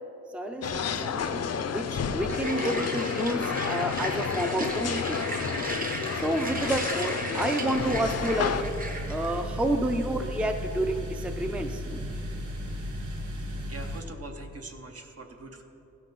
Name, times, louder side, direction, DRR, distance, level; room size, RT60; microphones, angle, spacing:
voice 1, 0.3-5.3 6.1-8.7 9.1-12.0, right 1 dB, 5° right, 6 dB, 0.4 m, -30 dB
sound 1, 0.6-8.6, left 6 dB, 60° left, 0.5 m, -30 dB
sound 2, 2.3-9.4, right 2 dB, 30° right, 0.9 m, -36 dB
sound 3, 7.7-14.0, equal, 90° right, 1.1 m, -35 dB
voice 2, 13.7-15.6, right 2 dB, 55° right, 4 dB, 0.9 m, -43 dB
16.0 x 5.8 x 5.3 m, 2.9 s
wide cardioid pair, 115°, 29 cm